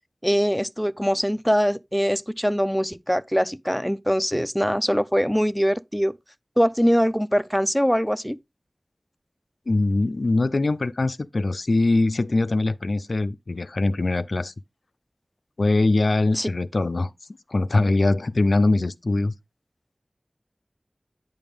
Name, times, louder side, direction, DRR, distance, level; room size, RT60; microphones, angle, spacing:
voice 1, 0.2-6.1 6.6-8.4 16.4-16.5, equal, ahead, 0.4 m, -22 dB
voice 2, 9.7-14.5 15.6-17.1 17.5-19.3, left 2 dB, 75° left, 0.3 m, -22 dB
9.1 x 5.3 x 3.3 m
wide cardioid pair, 50°, 0 cm